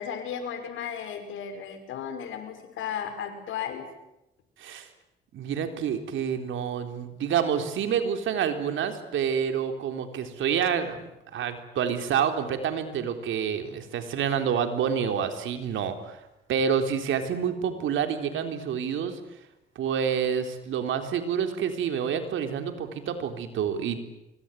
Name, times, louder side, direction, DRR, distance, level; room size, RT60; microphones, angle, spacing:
voice 1, 0.0-3.9, left 8 dB, 80° left, 7 dB, 5.6 m, -35 dB
voice 2, 5.3-11.0 11.3-16.2 16.5-19.2 19.8-24.0, right 7 dB, 75° right, 7 dB, 3.9 m, -28 dB
25.5 x 24.0 x 9.3 m, 0.93 s
cardioid pair, 90°, 20 cm